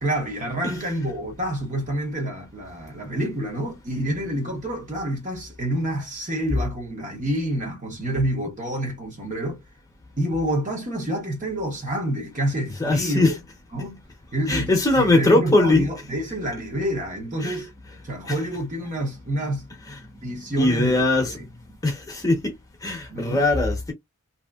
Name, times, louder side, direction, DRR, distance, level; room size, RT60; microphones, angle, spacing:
voice 1, 0.0-9.6 10.2-13.3 13.7-14.0 14.3-17.7 18.0-19.6 20.2-21.3 23.1-23.4, right 1 dB, 35° right, 1.0 m, -28 dB
voice 2, 12.8-13.4 14.5-15.9 17.4-17.6 18.3-18.4 20.6-21.3 21.8-22.4 22.8-23.9, left 2 dB, 15° left, 0.9 m, -20 dB
3.0 x 2.8 x 2.3 m
head